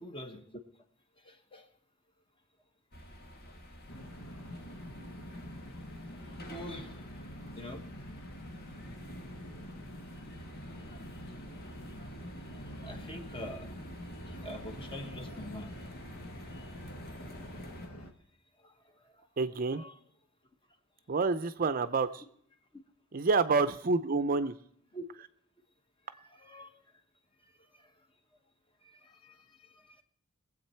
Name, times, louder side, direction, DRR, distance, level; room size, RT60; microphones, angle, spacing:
voice 1, 0.0-0.6 1.2-1.7 6.1-7.8 10.7-11.0 11.6-12.1 12.5-13.7 14.3-15.8 18.6-18.7 19.0-19.3 19.7-20.0 24.9-25.0 26.1-26.8 27.7-27.9 28.8-30.0, left 1 dB, 25° left, 6 dB, 1.1 m, -46 dB
sound 1, 2.9-17.9, equal, 45° left, 1.6 m, -50 dB
sound 2, 3.9-18.1, equal, 75° left, 1.4 m, -46 dB
voice 2, 19.4-19.8 21.1-22.2 23.1-24.5, right 4 dB, 40° right, 12 dB, 0.5 m, -28 dB
22.0 x 8.0 x 4.4 m, 0.64 s
head